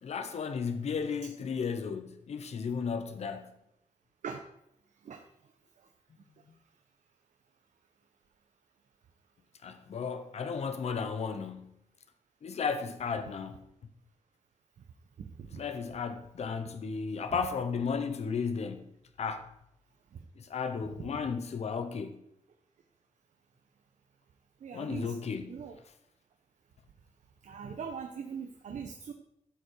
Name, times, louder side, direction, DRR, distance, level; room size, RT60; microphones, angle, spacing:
voice 1, 0.0-3.6 9.6-11.8 12.4-13.6 15.5-18.9 19.2-19.5 20.5-22.2 24.7-25.6, left 5 dB, 60° left, 1.0 m, -34 dB
voice 2, 24.6-25.1 25.5-25.8 27.4-29.1, right 6 dB, 80° right, 1.0 m, -40 dB
13.0 x 7.2 x 4.8 m
wide cardioid pair, 155°, 12 cm